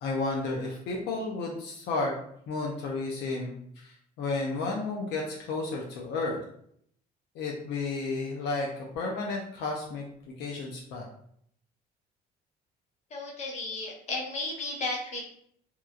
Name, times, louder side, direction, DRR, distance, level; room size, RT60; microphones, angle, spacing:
voice 1, 0.0-2.1 2.5-6.4 7.3-8.7 8.9-11.1, left 3 dB, 80° left, -1 dB, 0.5 m, -32 dB
voice 2, 13.1-15.2, left 2 dB, 40° left, -1 dB, 0.8 m, -34 dB
2.9 x 2.3 x 2.3 m, 0.68 s
cardioid pair, 110°, 17 cm